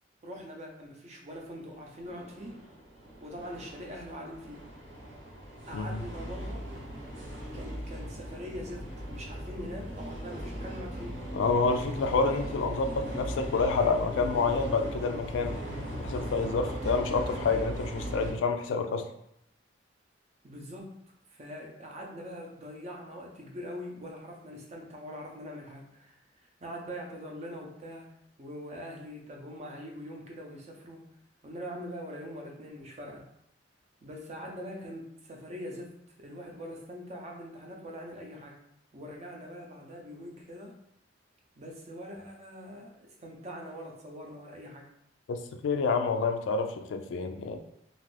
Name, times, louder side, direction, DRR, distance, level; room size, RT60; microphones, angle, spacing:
voice 1, 0.2-2.6 3.2-4.6 5.7-6.7 7.5-11.2 20.4-20.9 21.3-26.1 26.6-28.1 28.4-31.0 31.4-33.2 34.0-35.9 36.2-38.6 38.9-40.7 41.6-44.9, equal, 35° right, 1 dB, 0.6 m, -43 dB
sound 1, 1.9-18.3, equal, 80° right, 1.1 m, -38 dB
voice 2, 11.3-15.6 16.0-19.0 45.3-47.6, left 4 dB, 80° left, 7 dB, 0.3 m, -28 dB
2.5 x 2.4 x 3.2 m, 0.73 s
head